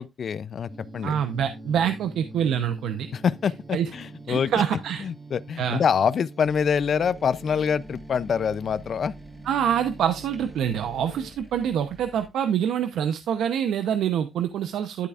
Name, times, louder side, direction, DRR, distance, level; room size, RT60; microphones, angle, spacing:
voice 1, 0.0-1.2 3.1-9.1, left 7 dB, 50° left, 0.4 m, -26 dB
sound 1, 0.7-11.3, right 2 dB, 30° right, 2.3 m, -44 dB
voice 2, 1.0-3.1 3.7-3.9 4.3-5.0 5.6-5.8 9.4-15.1, right 9 dB, 90° right, 0.8 m, -25 dB
sound 2, 6.4-12.3, equal, 15° right, 3.3 m, -49 dB
11.5 x 8.3 x 2.4 m
cardioid pair, 140°, 0 cm